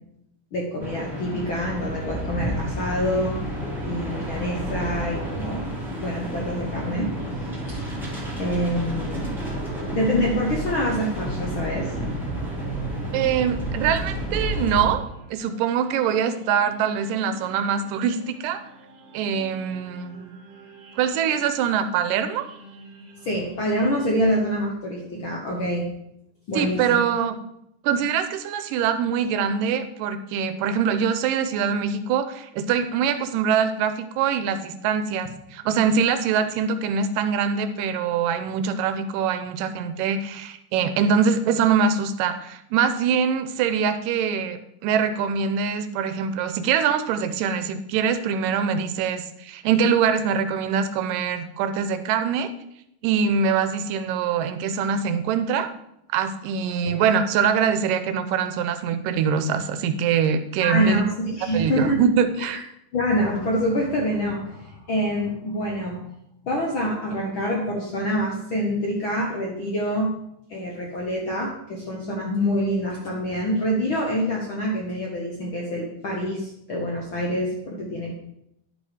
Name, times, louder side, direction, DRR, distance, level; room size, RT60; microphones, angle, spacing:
voice 1, 0.5-3.4 3.8-5.7 6.0-7.1 7.4-7.8 8.4-9.3 9.9-11.9 23.2-25.9 26.5-27.0 56.8-57.0 60.6-62.0 62.5-62.6 62.9-66.1 66.4-70.1 70.5-78.1, equal, 60° left, -2 dB, 1.3 m, -26 dB
sound 1, 0.8-14.9, equal, ahead, 1.6 m, -31 dB
sound 2, 7.8-24.5, right 8 dB, 60° right, 1.9 m, -42 dB
voice 2, 13.1-15.0 15.3-18.6 19.1-20.3 21.0-22.5 26.5-27.3 27.8-52.5 53.0-55.7 56.1-61.0 61.5-62.6, right 7 dB, 85° right, 10 dB, 2.2 m, -23 dB
10.5 x 5.3 x 4.9 m, 0.78 s
omnidirectional pair, 3.9 m